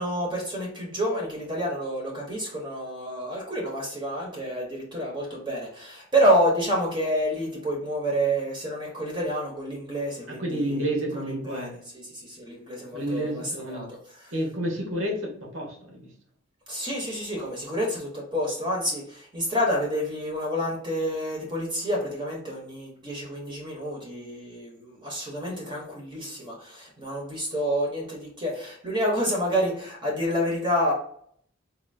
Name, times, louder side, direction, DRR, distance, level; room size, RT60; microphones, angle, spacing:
voice 1, 0.0-10.9 11.2-14.3 16.7-30.9, equal, 25° right, -2 dB, 0.9 m, -28 dB
voice 2, 10.3-11.7 12.9-13.9 14.3-16.1, right 1 dB, 85° right, -1 dB, 1.4 m, -30 dB
4.2 x 2.8 x 2.6 m, 0.62 s
head